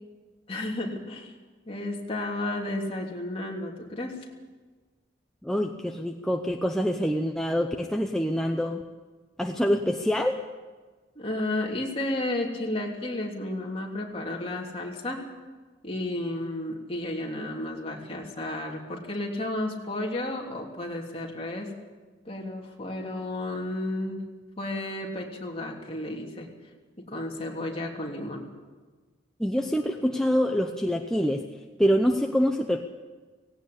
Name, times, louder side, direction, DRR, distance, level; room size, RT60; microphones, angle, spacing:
voice 1, 0.5-1.3 1.7-4.1 11.1-15.2 15.8-21.8 22.2-24.3 24.6-26.5 27.1-28.5, left 1 dB, 30° left, -1 dB, 3.1 m, -32 dB
voice 2, 5.4-8.8 9.4-10.4 29.4-31.5 31.8-32.8, equal, 5° left, 2 dB, 0.8 m, -25 dB
18.0 x 17.5 x 8.6 m, 1.4 s
head